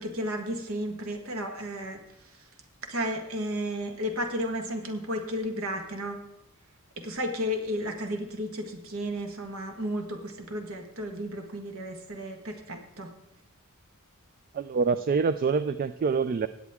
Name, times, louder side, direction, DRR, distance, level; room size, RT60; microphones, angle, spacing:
voice 1, 0.0-2.0 2.9-6.2 7.0-13.1, equal, 65° right, 5 dB, 1.5 m, -33 dB
voice 2, 14.5-16.5, right 5 dB, 40° right, 12 dB, 0.3 m, -26 dB
16.5 x 9.3 x 3.6 m, 0.88 s
head